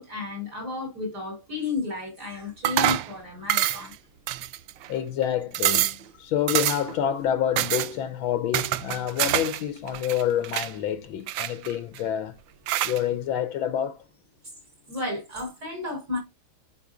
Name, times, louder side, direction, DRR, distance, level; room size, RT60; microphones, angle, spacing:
voice 1, 0.0-3.9 14.9-16.2, left 3 dB, 45° right, 5.4 m, -32 dB
sound 1, 2.6-3.1 3.5-3.9 4.3-4.9 5.2-5.3 5.5-6.0 6.5-7.0 7.6-7.9 8.5-9.6 9.9-10.7 11.3-12.0 12.7-13.0, right 13 dB, 75° right, 1.2 m, -26 dB
voice 2, 4.9-12.4 12.8-14.0, left 10 dB, 75° left, 1.5 m, -28 dB
12.5 x 4.6 x 2.4 m
omnidirectional pair, 2.3 m